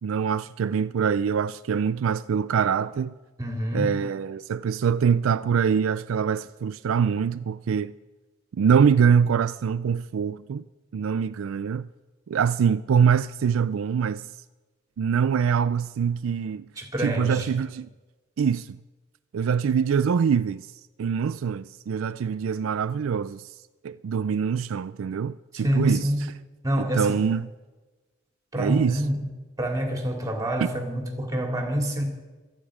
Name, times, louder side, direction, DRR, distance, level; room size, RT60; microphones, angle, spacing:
voice 1, 0.0-3.1 3.7-7.9 8.6-10.6 10.9-11.9 12.3-14.3 15.0-16.7 17.0-17.9 18.4-18.8 19.3-20.7 21.0-23.5 23.8-26.1 26.8-27.5 28.6-29.0 30.6-30.7, right 7 dB, 80° right, 0.4 m, -24 dB
voice 2, 3.4-3.9 16.8-17.5 25.5-26.3 26.6-27.2 28.5-29.2 29.6-32.0, equal, 15° right, 2.6 m, -27 dB
25.5 x 9.1 x 4.9 m
head